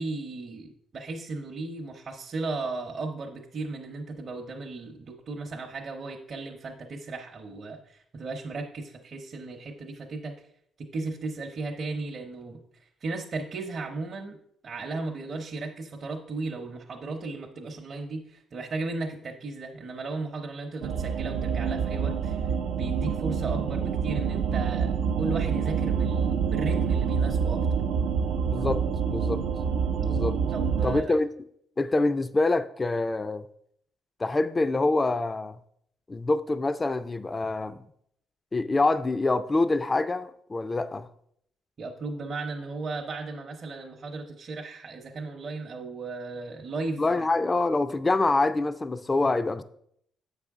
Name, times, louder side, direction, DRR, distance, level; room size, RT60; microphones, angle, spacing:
voice 1, 0.0-10.5 10.8-27.6 30.5-31.2 41.8-47.3, right 3 dB, 50° right, 0.7 m, -35 dB
sound 1, 20.8-31.0, right 6 dB, 85° right, 0.4 m, -27 dB
voice 2, 28.5-29.4 30.0-30.4 30.8-31.3 31.8-33.4 34.2-35.6 36.1-37.8 38.5-41.1 47.0-49.6, left 2 dB, 25° left, 0.3 m, -26 dB
7.7 x 5.6 x 3.6 m
cardioid pair, 90°, 0 cm